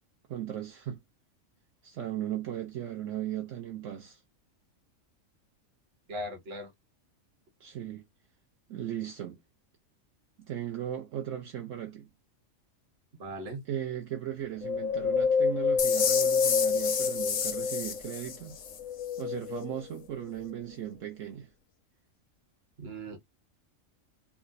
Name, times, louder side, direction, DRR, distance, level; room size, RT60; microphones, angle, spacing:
voice 1, 0.3-1.0 1.8-4.2 7.6-8.0 8.7-9.4 10.4-12.1 13.7-18.6 19.2-21.5, right 11 dB, 70° right, 1.0 m, -37 dB
voice 2, 6.1-6.7 13.2-13.6 22.8-23.2, right 1 dB, 50° right, 1.2 m, -38 dB
Wind, 14.6-18.2 18.7-20.0 20.5-20.6, left 5 dB, 80° left, 1.0 m, -28 dB
sound 1, 15.8-18.8, left 7 dB, 55° left, 0.5 m, -31 dB
4.8 x 2.0 x 2.5 m
omnidirectional pair, 1.4 m